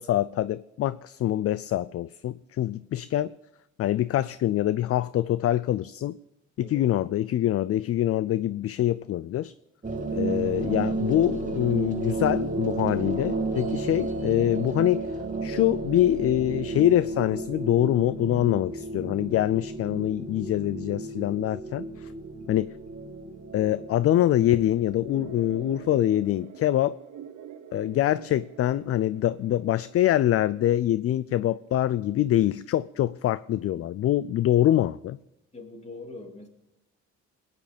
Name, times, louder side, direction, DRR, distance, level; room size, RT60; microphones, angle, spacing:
voice 1, 0.0-3.3 3.8-6.2 6.6-9.5 10.1-15.1 15.4-22.1 22.5-22.7 23.5-27.0 27.7-35.2, left 13 dB, 50° left, 0.4 m, -24 dB
sound 1, 9.8-26.3, right 3 dB, 25° right, 2.4 m, -33 dB
sound 2, 25.1-30.1, right 10 dB, 70° right, 1.1 m, -45 dB
voice 2, 35.5-36.5, left 2 dB, 20° left, 2.8 m, -42 dB
20.5 x 9.5 x 5.1 m
cardioid pair, 90°, 30 cm